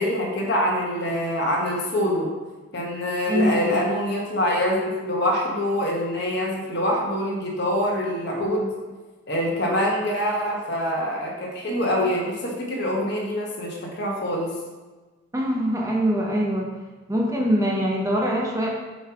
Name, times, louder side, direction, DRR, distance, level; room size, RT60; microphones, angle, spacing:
voice 1, 0.0-2.3 2.7-8.7 9.3-14.5, equal, 55° left, -2 dB, 1.3 m, -25 dB
voice 2, 3.3-3.7 15.3-16.7 17.1-18.7, equal, 15° right, -2 dB, 0.8 m, -23 dB
7.5 x 3.1 x 4.8 m, 1.3 s
head